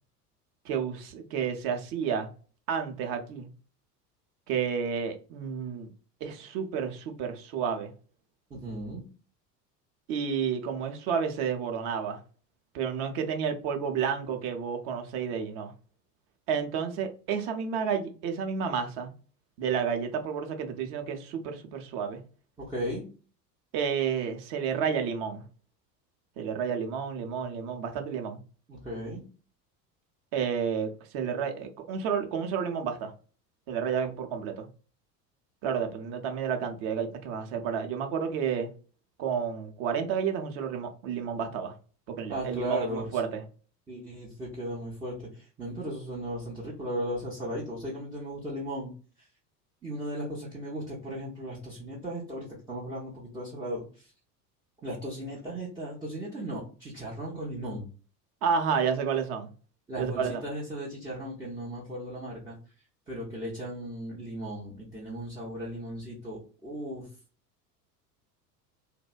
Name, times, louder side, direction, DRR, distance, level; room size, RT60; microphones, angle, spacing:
voice 1, 0.6-2.3 2.7-3.5 4.5-5.9 6.2-7.9 10.1-12.2 12.7-15.7 16.5-19.1 19.6-22.2 23.7-25.4 26.4-28.4 30.3-33.1 33.7-34.7 35.6-38.7 39.2-41.7 42.1-43.3 58.4-59.5 60.0-60.4, right 7 dB, 45° right, 0.6 m, -31 dB
voice 2, 8.5-9.0 22.6-23.1 28.7-29.2 42.3-43.1 43.9-48.9 49.8-54.1 54.8-57.9 59.9-62.6 63.1-67.1, equal, 10° right, 0.3 m, -36 dB
2.5 x 2.1 x 2.3 m
figure-of-eight pair, 75°, 49 cm